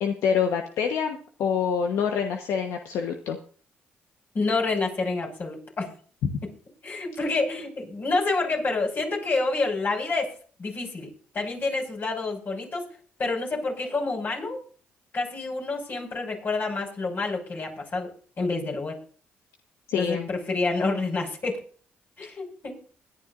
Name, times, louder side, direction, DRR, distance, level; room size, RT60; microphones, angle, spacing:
voice 1, 0.0-3.4 19.9-20.3, left 7 dB, 75° left, 4 dB, 1.1 m, -26 dB
voice 2, 4.3-5.9 6.8-11.1 11.3-12.9 13.2-14.6 15.1-18.1 18.4-19.0 20.0-21.6 22.2-22.8, left 3 dB, 45° left, 0 dB, 5.5 m, -28 dB
21.5 x 11.0 x 2.6 m, 0.43 s
supercardioid pair, 65°, 5 cm